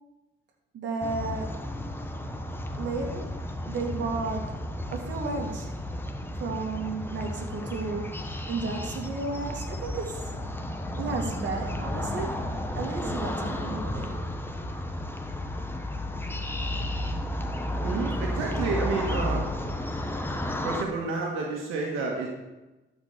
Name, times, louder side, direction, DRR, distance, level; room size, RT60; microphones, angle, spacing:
voice 1, 0.7-1.6 2.8-3.3 3.7-4.5 4.9-5.7 6.4-8.2 8.5-10.4 11.0-12.4 12.7-14.1, right 3 dB, 65° right, 1 dB, 2.4 m, -33 dB
sound 1, 1.0-20.8, left 1 dB, 10° left, 1.1 m, -33 dB
voice 2, 17.8-19.5 20.6-22.3, right 4 dB, 90° right, -1 dB, 1.8 m, -30 dB
12.5 x 5.1 x 7.0 m, 1.1 s
cardioid pair, 90°, 20 cm